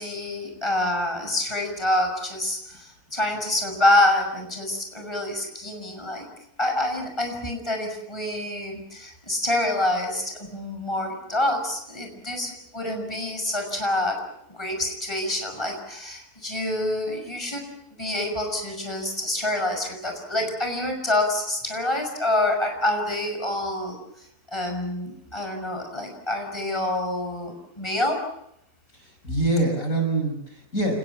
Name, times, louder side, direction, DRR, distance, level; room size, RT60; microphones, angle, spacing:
voice 1, 0.0-6.3 6.6-14.2 14.5-17.6 18.0-24.0 24.5-28.2, left 1 dB, 15° left, 3 dB, 6.0 m, -27 dB
voice 2, 28.9-31.0, right 2 dB, 60° left, 4 dB, 6.1 m, -25 dB
29.5 x 20.5 x 7.2 m, 0.75 s
omnidirectional pair, 1.6 m